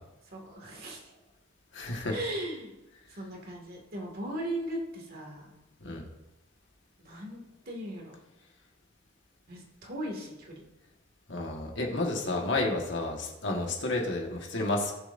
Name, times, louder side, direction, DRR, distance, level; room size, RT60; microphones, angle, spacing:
voice 1, 0.3-1.1 2.1-2.7 3.1-5.5 7.0-8.2 9.5-10.6, right 1 dB, 45° right, 0 dB, 2.2 m, -38 dB
voice 2, 1.7-2.2 5.8-6.0 11.3-14.9, left 2 dB, 55° left, 0 dB, 1.6 m, -31 dB
19.0 x 7.1 x 2.7 m, 0.98 s
head